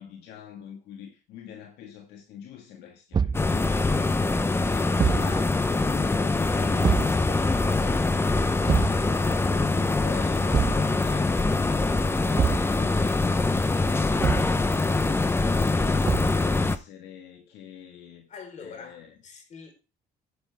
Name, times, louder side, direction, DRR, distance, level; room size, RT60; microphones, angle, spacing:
voice 1, 0.0-8.1 8.6-13.2 15.7-18.3 18.6-19.2, left 9 dB, 85° left, 1.8 m, -45 dB
Thump thud, 3.1-3.5 5.0-5.3 6.8-7.2 8.7-9.0 10.5-10.9 12.4-12.7 14.2-14.6 16.1-16.4, right 6 dB, 25° right, 0.5 m, -24 dB
sound 1, 3.3-16.8, left 3 dB, 15° left, 0.8 m, -24 dB
voice 2, 18.3-19.7, left 5 dB, 45° left, 4.4 m, -44 dB
10.5 x 10.0 x 3.5 m
cardioid pair, 110°, 17 cm